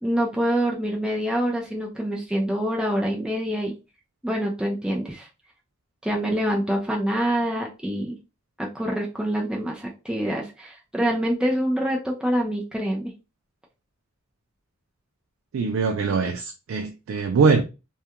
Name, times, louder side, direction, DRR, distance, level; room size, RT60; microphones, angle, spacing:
voice 1, 0.0-3.7 4.2-5.3 6.0-8.2 8.6-13.1, equal, 5° right, 0.4 m, -26 dB
voice 2, 15.5-17.6, right 4 dB, 75° right, 0.3 m, -22 dB
2.3 x 2.2 x 2.7 m
head